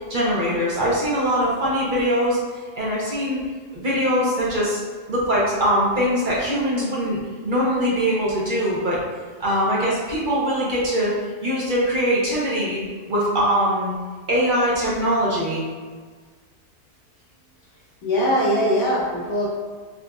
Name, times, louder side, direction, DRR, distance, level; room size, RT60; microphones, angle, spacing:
voice 1, 0.0-2.4 2.8-3.4 3.7-4.8 5.1-7.2 7.4-9.0 9.4-11.1 11.4-12.8 13.1-13.9 14.3-15.6, equal, 45° right, -6 dB, 0.8 m, -22 dB
voice 2, 18.0-19.5, equal, 40° left, -8 dB, 1.3 m, -21 dB
5.2 x 2.4 x 2.3 m, 1.5 s
omnidirectional pair, 1.6 m